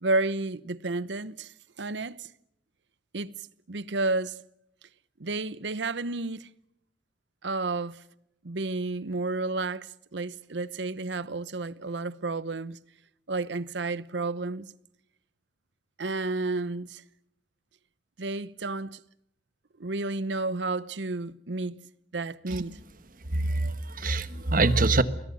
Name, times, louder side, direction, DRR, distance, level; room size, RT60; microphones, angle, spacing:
voice 1, 0.0-2.3 3.1-4.4 5.2-6.5 7.4-8.0 8.4-12.8 13.3-14.7 16.0-17.0 18.2-19.0 19.8-21.8 22.1-22.8, right 3 dB, 85° right, 0.9 m, -31 dB
voice 2, 23.3-25.0, right 2 dB, 50° right, 1.4 m, -24 dB
29.5 x 21.5 x 7.0 m
head